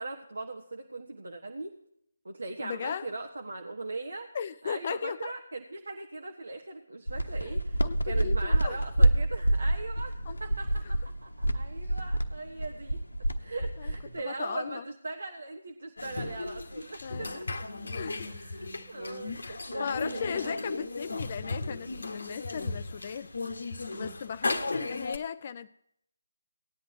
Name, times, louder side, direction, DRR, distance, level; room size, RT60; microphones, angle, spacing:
voice 1, 0.0-1.8 2.2-4.3 4.6-13.0 13.4-17.5 18.3-21.0 24.4-24.7, right 2 dB, 60° right, 3 dB, 1.3 m, -40 dB
voice 2, 2.6-3.1 4.3-5.3 7.4-8.8 10.3-10.4 10.8-10.9 13.8-13.9 14.2-14.8 17.0-17.4 17.9-18.4 18.8-18.9 19.4-23.3 23.9-25.7, left 7 dB, 35° left, 13 dB, 0.4 m, -37 dB
sound 1, 7.1-14.2, right 1 dB, 80° left, 1.1 m, -27 dB
sound 2, 16.0-25.2, left 3 dB, 60° left, 1.2 m, -36 dB
18.5 x 10.5 x 2.9 m, 0.71 s
figure-of-eight pair, 150°, 0 cm